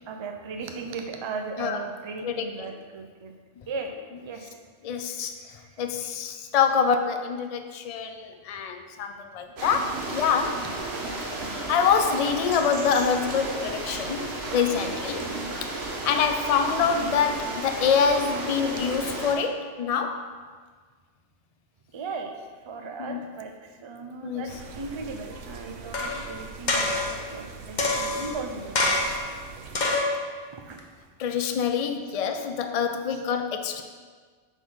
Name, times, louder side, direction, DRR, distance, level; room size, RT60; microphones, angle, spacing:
voice 1, 0.1-3.3 3.7-4.6 5.6-5.8 10.5-11.1 14.4-14.5 21.9-29.2 29.8-30.2 30.5-30.8 33.1-33.2, right 4 dB, 35° right, 4 dB, 0.4 m, -37 dB
voice 2, 4.8-5.3 5.8-10.6 11.5-15.3 15.6-20.3 23.0-23.2 24.2-24.4 31.2-33.8, left 6 dB, 80° left, 6 dB, 0.3 m, -26 dB
sound 1, 9.6-19.4, right 2 dB, 60° right, 1.2 m, -33 dB
sound 2, 24.5-29.8, right 5 dB, 85° right, 1.0 m, -43 dB
sound 3, 25.9-26.3 26.7-27.2 27.8-28.4 28.7-29.3 29.7-30.2 30.8-30.9, left 2 dB, 45° left, 0.9 m, -25 dB
7.2 x 3.9 x 5.4 m, 1.5 s
omnidirectional pair, 1.2 m